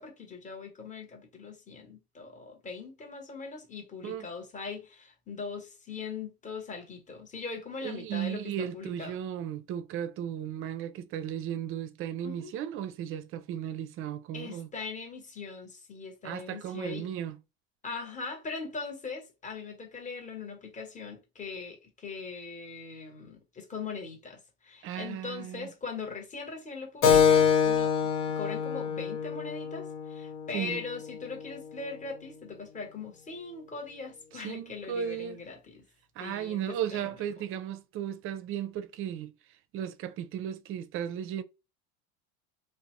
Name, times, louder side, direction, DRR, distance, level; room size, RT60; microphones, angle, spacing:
voice 1, 0.0-8.4 8.7-9.2 12.2-12.5 14.3-17.1 17.8-28.1 28.4-35.8 36.2-37.1, left 4 dB, 20° left, 1.0 m, -40 dB
voice 2, 7.8-14.7 16.2-17.4 24.8-25.7 30.5-30.8 34.3-35.4 36.2-39.3 39.7-41.4, right 9 dB, 40° right, 0.4 m, -35 dB
Keyboard (musical), 27.0-32.1, left 7 dB, 80° left, 1.1 m, -26 dB
2.5 x 2.0 x 3.0 m
supercardioid pair, 105°, 34 cm